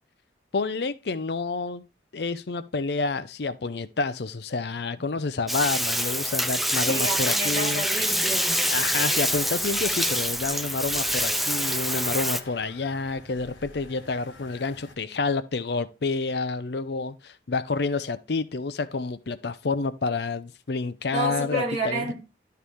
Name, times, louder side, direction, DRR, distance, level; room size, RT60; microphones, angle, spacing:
voice 1, 0.5-1.8 2.1-7.9 8.7-22.1, left 3 dB, 65° left, 0.6 m, -29 dB
Bathtub (filling or washing), 5.5-12.4, equal, ahead, 0.4 m, -26 dB
voice 2, 6.9-8.6 21.1-22.1, right 2 dB, 35° right, 3.1 m, -30 dB
sound 1, 7.9-14.9, left 3 dB, 85° left, 1.4 m, -45 dB
11.5 x 4.7 x 3.5 m
head